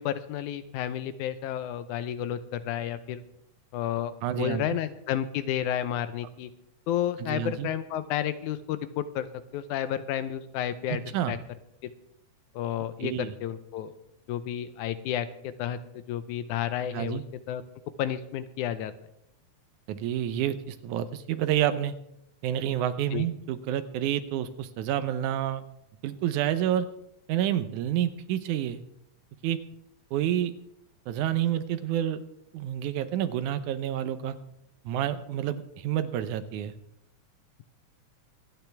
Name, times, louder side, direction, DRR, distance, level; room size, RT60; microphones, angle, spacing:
voice 1, 0.0-3.2 3.7-6.5 6.9-9.3 9.5-11.4 11.8-11.9 12.6-14.0 14.3-17.2 17.5-17.6 18.0-18.9 23.1-23.3, left 10 dB, 85° left, 12 dB, 2.2 m, -31 dB
voice 2, 4.2-4.6 7.2-7.7 10.9-11.3 13.0-13.3 16.9-17.2 19.9-21.9 22.4-25.6 26.0-26.9 27.3-28.8 29.4-29.6 30.1-30.5 31.1-32.2 32.5-34.4 34.9-36.7, right 11 dB, 85° right, 11 dB, 2.2 m, -29 dB
25.0 x 9.2 x 3.5 m, 0.81 s
omnidirectional pair, 3.4 m